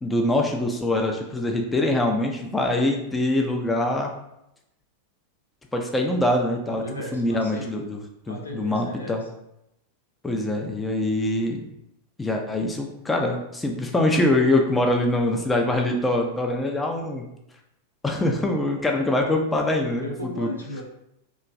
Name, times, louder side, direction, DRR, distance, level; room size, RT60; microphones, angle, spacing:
voice 1, 0.0-4.1 5.7-6.8 7.1-8.0 8.3-9.2 10.2-11.7 12.2-17.3 18.0-20.1 20.4-20.5, left 1 dB, 10° left, 1 dB, 0.4 m, -24 dB
voice 2, 6.7-7.7 8.3-9.3 19.8-20.8, left 1 dB, 80° left, -1 dB, 0.6 m, -36 dB
2.9 x 2.5 x 2.4 m, 0.83 s
figure-of-eight pair, 90°, 0 cm